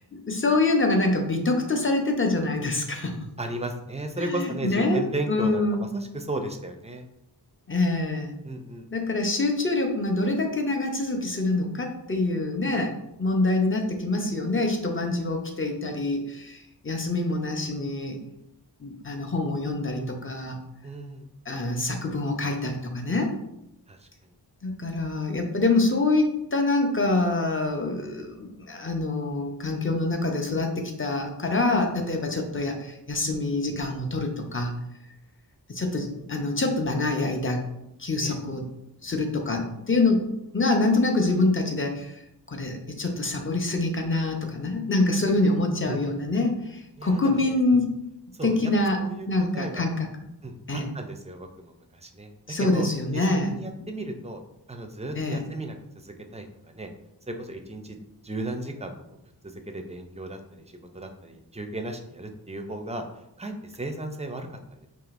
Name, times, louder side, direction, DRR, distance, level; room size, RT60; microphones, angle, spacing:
voice 1, 0.1-3.2 4.2-5.0 5.3-5.8 7.7-8.3 8.9-12.9 13.2-18.2 18.8-20.6 21.5-23.3 24.6-34.7 35.7-37.6 38.0-38.7 39.0-40.2 40.5-42.2 42.5-47.9 48.4-49.0 49.3-50.1 50.7-50.9 52.5-53.5 55.2-55.5, left 2 dB, 30° left, 2 dB, 0.6 m, -25 dB
voice 2, 3.4-7.1 8.4-8.9 20.8-21.3 23.9-24.1 38.2-38.4 45.9-46.0 47.0-47.6 48.3-48.6 49.0-49.9 50.4-52.9 53.1-54.4 54.7-56.9 57.3-58.0 58.2-59.0 59.4-63.0 63.4-64.9, right 1 dB, 15° right, 5 dB, 0.4 m, -35 dB
4.9 x 2.8 x 2.5 m, 0.85 s
wide cardioid pair, 55°, 42 cm